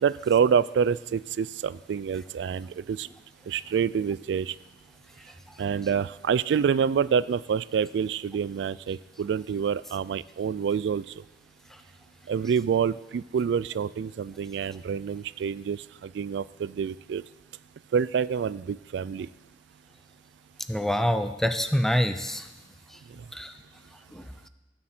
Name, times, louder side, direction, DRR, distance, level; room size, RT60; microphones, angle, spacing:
voice 1, 0.0-3.1 3.5-4.5 5.6-11.0 12.3-17.2 17.9-19.3, right 7 dB, 80° right, 18 dB, 0.3 m, -27 dB
voice 2, 20.7-22.4 23.3-23.5 24.1-24.2, equal, ahead, 9 dB, 0.5 m, -26 dB
18.5 x 7.5 x 4.4 m, 1.1 s
head